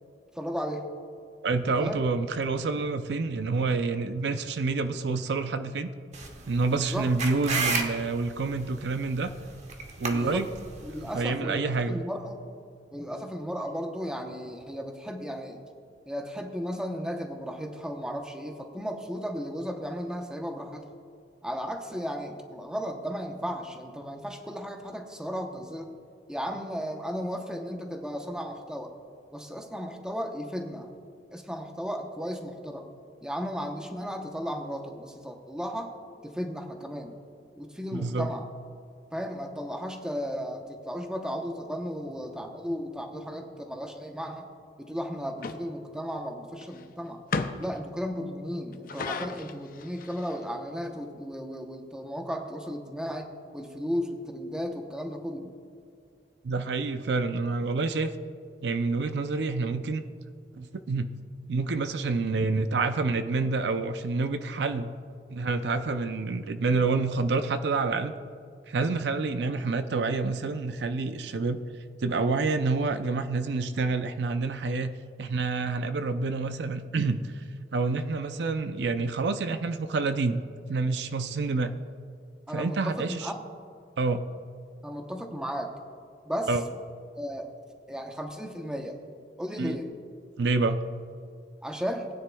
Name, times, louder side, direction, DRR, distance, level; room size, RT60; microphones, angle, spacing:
voice 1, 0.3-0.8 1.8-2.0 6.7-7.1 10.1-10.5 10.8-12.4 12.9-15.6 16.1-20.8 21.4-25.9 26.3-28.9 29.3-30.9 31.3-32.9 33.2-35.9 36.2-37.1 37.6-38.4 39.1-44.5 44.8-47.2 47.6-55.5 82.5-83.4 84.8-85.7 86.3-86.5 87.2-87.5 87.9-89.0 89.4-89.9 91.6-92.1, equal, 5° right, 3 dB, 0.8 m, -35 dB
voice 2, 1.4-5.9 6.5-9.3 10.0-10.5 11.1-12.0 37.9-38.3 56.4-58.1 58.6-60.0 60.5-61.1 61.5-64.9 65.3-68.1 68.7-71.6 72.0-77.4 77.7-80.4 80.7-81.7 82.5-83.3 84.0-84.2 86.5-86.6 89.6-89.8 90.4-90.8, right 3 dB, 75° right, 9 dB, 0.5 m, -28 dB
sound 1, 6.1-11.2, right 4 dB, 40° right, 1.1 m, -34 dB
sound 2, 45.4-45.6 46.6-46.8 47.3-47.8 48.7-50.4, left 4 dB, 55° left, 0.5 m, -33 dB
19.0 x 9.7 x 2.3 m, 2.3 s
head